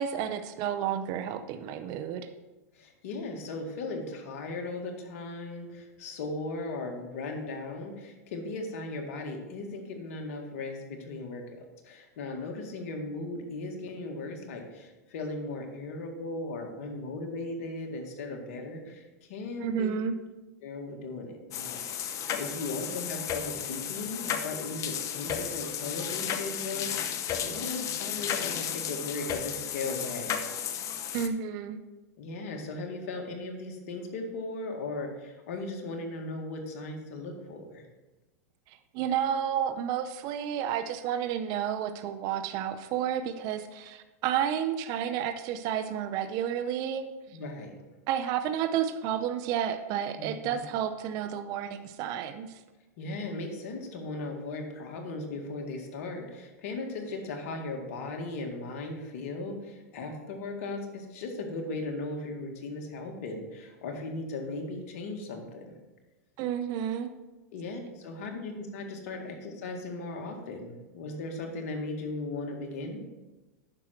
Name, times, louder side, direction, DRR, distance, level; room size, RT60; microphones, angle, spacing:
voice 1, 0.0-2.3 19.6-20.1 31.1-31.8 38.7-47.0 48.1-52.6 66.4-67.1, right 9 dB, 45° right, 10 dB, 0.7 m, -31 dB
voice 2, 2.7-19.9 20.6-30.3 32.2-37.9 47.3-47.8 50.2-50.6 53.0-65.7 67.5-73.0, left 2 dB, 65° left, 3 dB, 1.9 m, -37 dB
sound 1, 21.5-31.3, left 8 dB, 35° left, 0.8 m, -34 dB
9.7 x 6.3 x 4.5 m, 1.1 s
hypercardioid pair, 115°, 9 cm